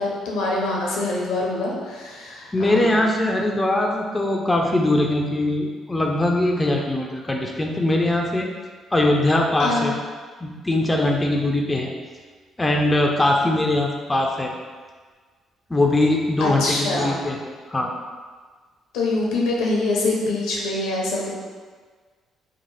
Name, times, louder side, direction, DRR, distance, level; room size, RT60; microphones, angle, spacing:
voice 1, 0.0-3.0 9.6-9.9 16.4-17.2 18.9-21.3, left 2 dB, 80° left, -2 dB, 0.6 m, -24 dB
voice 2, 2.5-8.5 8.9-9.9 10.4-11.9 12.6-14.5 15.7-17.9, left 1 dB, 20° left, 1 dB, 0.4 m, -21 dB
2.8 x 2.0 x 3.1 m, 1.5 s
supercardioid pair, 60°, 0 cm